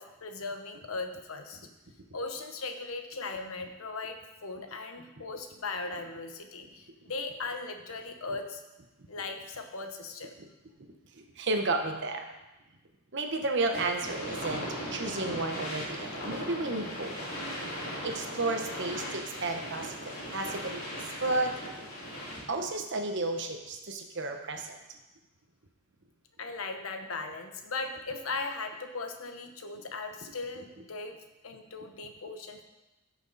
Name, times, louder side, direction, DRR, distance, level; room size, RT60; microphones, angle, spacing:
voice 1, 0.0-1.6 2.1-8.6 9.1-10.3 26.4-31.1 31.4-32.6, left 3 dB, 80° left, 5 dB, 1.1 m, -38 dB
voice 2, 11.1-12.3 13.1-17.2 18.0-20.8 21.2-21.5 22.5-24.7, right 2 dB, 55° right, 4 dB, 1.2 m, -32 dB
sound 1, 13.7-22.6, equal, 45° left, 2.9 m, -38 dB
16.0 x 6.3 x 4.2 m, 1.0 s
head